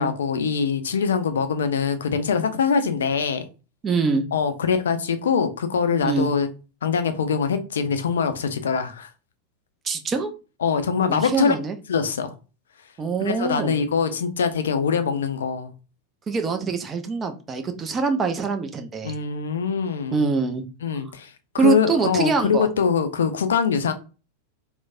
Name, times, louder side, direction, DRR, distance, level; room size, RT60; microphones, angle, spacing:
voice 1, 0.0-3.5 4.3-6.5 6.8-9.1 10.6-11.6 11.9-12.3 13.2-15.7 19.0-20.2 20.8-21.3 21.5-23.9, left 6 dB, 65° left, 0.3 m, -23 dB
voice 2, 3.8-4.3 6.0-6.3 9.8-10.3 11.1-11.8 13.0-13.8 16.3-19.1 20.1-20.6 21.6-22.7, right 4 dB, 20° right, 0.4 m, -24 dB
3.1 x 2.1 x 2.4 m
figure-of-eight pair, 90°, 0 cm